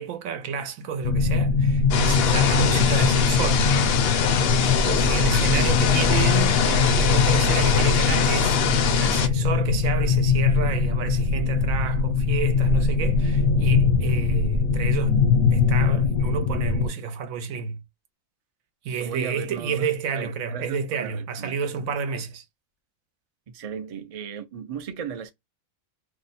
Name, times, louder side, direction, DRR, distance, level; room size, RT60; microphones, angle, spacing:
voice 1, 0.0-3.6 4.6-15.2 15.5-17.8 18.8-22.4, right 6 dB, 90° right, 1.1 m, -30 dB
sound 1, 1.0-16.9, left 4 dB, 80° left, 1.2 m, -22 dB
sound 2, 1.9-9.3, left 8 dB, 65° left, 0.6 m, -24 dB
voice 2, 19.0-21.6 23.5-25.3, right 7 dB, 65° right, 0.3 m, -36 dB
2.8 x 2.1 x 4.0 m
omnidirectional pair, 1.4 m